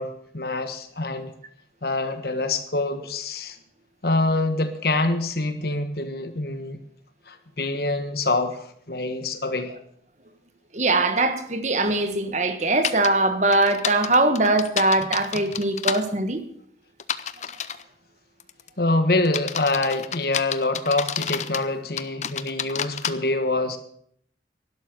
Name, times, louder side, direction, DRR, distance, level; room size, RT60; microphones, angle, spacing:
voice 1, 0.0-1.3 1.8-3.6 4.0-6.8 7.3-9.7 18.8-23.8, left 2 dB, 55° left, 9 dB, 1.4 m, -25 dB
voice 2, 10.7-16.4, right 2 dB, 40° right, 9 dB, 1.3 m, -21 dB
sound 1, 12.8-13.1 13.5-16.0 17.0-17.8 18.4-18.7 19.2-21.7 22.0-23.1, left 8 dB, 40° left, 0.6 m, -29 dB
12.0 x 11.5 x 6.6 m, 0.65 s
head